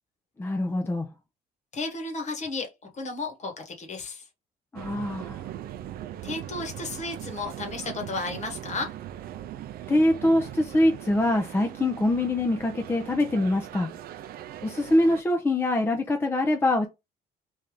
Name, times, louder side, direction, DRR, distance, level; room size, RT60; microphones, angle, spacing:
voice 1, 0.4-1.1 4.7-5.4 9.9-13.9 14.6-16.9, left 1 dB, 15° left, 0.5 m, -24 dB
voice 2, 1.7-4.3 6.2-8.9, left 3 dB, 45° left, 1.3 m, -33 dB
sound 1, 4.8-15.2, right 12 dB, 60° right, 0.4 m, -40 dB
3.3 x 2.7 x 3.7 m
cardioid pair, 110°, 17 cm